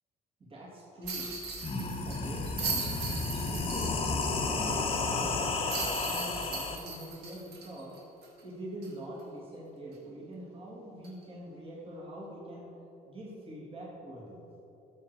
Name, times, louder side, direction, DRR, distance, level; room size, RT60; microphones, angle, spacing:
voice 1, 0.4-1.3 1.7-3.0 3.4-8.0 8.4-12.7 13.1-14.4, right 1 dB, 35° right, -5 dB, 2.5 m, -44 dB
sound 1, 1.0-1.1 1.5-6.8, left 3 dB, 35° left, 1.1 m, -32 dB
sound 2, 1.1-4.3 4.6-4.7 5.7-8.4 8.8-8.9 11.0-11.2, right 4 dB, 75° right, 2.1 m, -38 dB
12.5 x 6.7 x 4.9 m, 2.9 s
cardioid pair, 110°, 17 cm